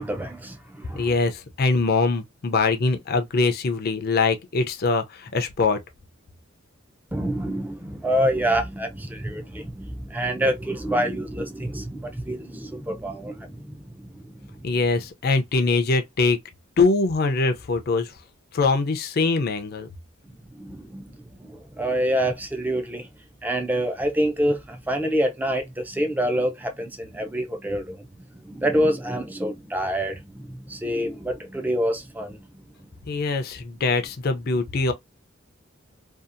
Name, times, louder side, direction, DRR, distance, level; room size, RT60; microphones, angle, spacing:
voice 1, 0.0-1.1 7.1-14.7 20.5-23.1 23.4-28.1 28.3-32.4, equal, 10° right, 0.4 m, -27 dB
voice 2, 0.9-5.8 14.6-16.4 16.8-18.1 18.5-19.9 33.1-34.9, left 3 dB, 50° left, 0.5 m, -23 dB
2.7 x 2.4 x 2.4 m
head